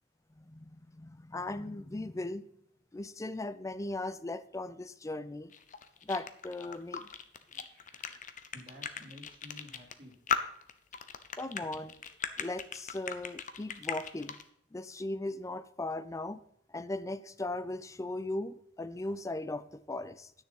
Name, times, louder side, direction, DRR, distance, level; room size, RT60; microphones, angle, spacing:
voice 1, 0.4-2.4 2.9-5.5 6.0-7.0 11.4-11.9 12.4-14.4 14.7-16.4 16.7-20.3, left 2 dB, 15° left, 14 dB, 0.5 m, -38 dB
sound 1, 5.5-14.4, left 7 dB, 45° left, 0.8 m, -37 dB
voice 2, 7.4-8.2 8.5-10.2, left 1 dB, 30° right, -4 dB, 3.6 m, -53 dB
10.0 x 6.4 x 5.5 m, 0.71 s
head